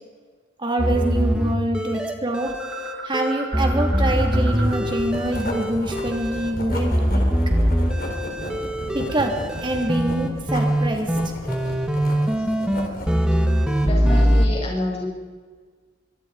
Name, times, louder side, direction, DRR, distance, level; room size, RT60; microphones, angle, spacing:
voice 1, 0.6-2.6 3.0-7.2 8.9-11.2, right 1 dB, 25° right, 2 dB, 3.2 m, -25 dB
sound 1, 0.8-14.5, equal, 5° right, 1.9 m, -22 dB
sound 2, 2.5-5.1 5.3-7.6, right 4 dB, 65° right, 4.1 m, -38 dB
Writing, 3.9-13.2, equal, 50° left, 4.1 m, -33 dB
voice 2, 12.1-12.4 13.8-15.1, left 1 dB, 30° left, -2 dB, 7.6 m, -29 dB
25.0 x 22.0 x 5.1 m, 1.5 s
head